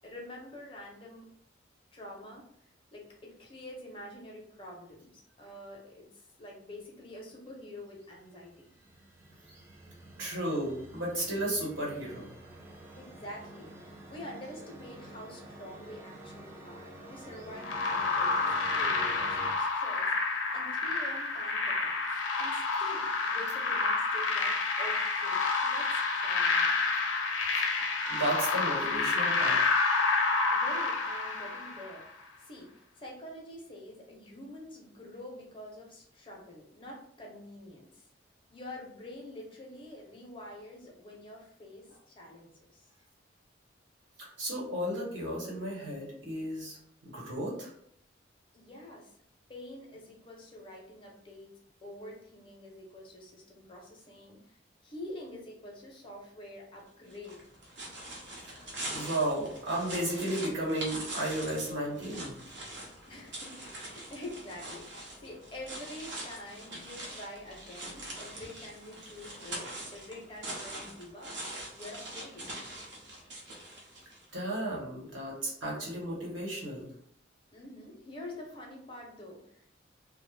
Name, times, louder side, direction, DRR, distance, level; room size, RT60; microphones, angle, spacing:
voice 1, 0.0-1.2 1.9-2.4 2.9-8.7 12.9-21.9 22.4-26.8 30.5-38.1 38.5-42.9 48.5-49.1 49.5-51.5 51.8-54.6 54.8-57.5 63.1-71.3 71.7-72.5 77.5-79.8, left 1 dB, 25° left, -1 dB, 0.6 m, -47 dB
sound 1, 8.0-19.5, right 1 dB, 15° right, 0.3 m, -49 dB
voice 2, 10.2-12.3 27.6-29.6 44.2-46.8 47.0-47.7 58.9-62.3 74.3-76.9, right 1 dB, 85° right, -4 dB, 1.0 m, -34 dB
sound 2, 17.6-32.0, left 3 dB, 85° left, 0.5 m, -29 dB
sound 3, 57.1-74.3, right 1 dB, 65° right, 0.7 m, -43 dB
2.4 x 2.1 x 3.1 m, 0.66 s
head